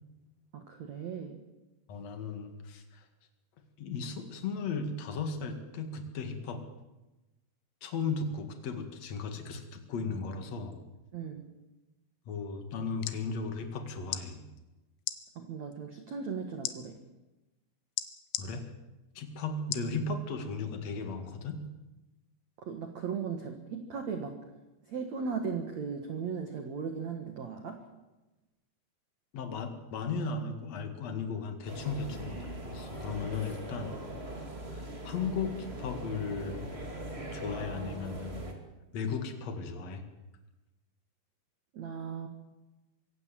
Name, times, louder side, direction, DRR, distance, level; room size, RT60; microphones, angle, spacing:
voice 1, 0.5-1.4 11.1-11.4 15.3-17.0 22.6-24.4 24.9-27.8 41.7-42.3, right 6 dB, 75° right, 5 dB, 1.6 m, -37 dB
voice 2, 1.9-3.1 3.8-6.6 7.8-10.8 12.3-14.4 18.4-18.7 19.1-21.6 29.3-34.0 34.3-34.4 34.7-36.6 37.3-38.5 38.9-40.0, left 4 dB, 50° left, 6 dB, 2.0 m, -36 dB
sound 1, 13.0-13.2 14.1-14.3 15.0-15.2 16.6-16.8 18.0-18.5 19.7-19.9 20.5-20.6, left 14 dB, 80° left, 3.4 m, -34 dB
sound 2, 31.6-38.5, right 1 dB, 30° right, 1.2 m, -41 dB
25.0 x 16.0 x 7.7 m, 1.1 s
omnidirectional pair, 5.9 m